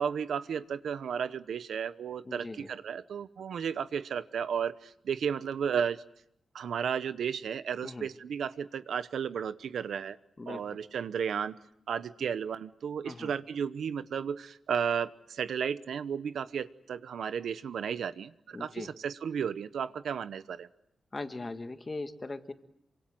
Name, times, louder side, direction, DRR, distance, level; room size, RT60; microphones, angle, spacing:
voice 1, 0.0-6.0 6.5-10.2 10.5-11.5 11.9-20.7, right 7 dB, 80° right, 13 dB, 1.0 m, -33 dB
voice 2, 2.2-2.7 7.8-8.1 10.4-10.8 13.0-13.3 18.5-18.9 21.1-22.5, left 3 dB, 25° left, 8 dB, 1.6 m, -40 dB
27.5 x 25.0 x 7.7 m, 0.75 s
wide cardioid pair, 160°, 0 cm